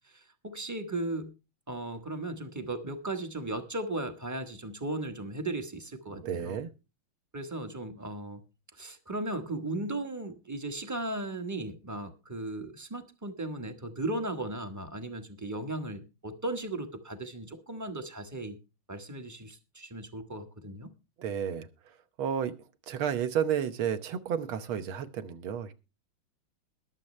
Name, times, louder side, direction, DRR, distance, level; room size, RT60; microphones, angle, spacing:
voice 1, 0.1-1.3 1.7-6.6 7.3-8.4 8.8-18.6 18.9-20.9, right 2 dB, 15° right, 0.6 m, -36 dB
voice 2, 6.1-6.7 21.2-21.7 22.2-22.5 22.9-25.7, right 8 dB, 80° right, 1.9 m, -31 dB
21.0 x 7.3 x 3.2 m
omnidirectional pair, 2.3 m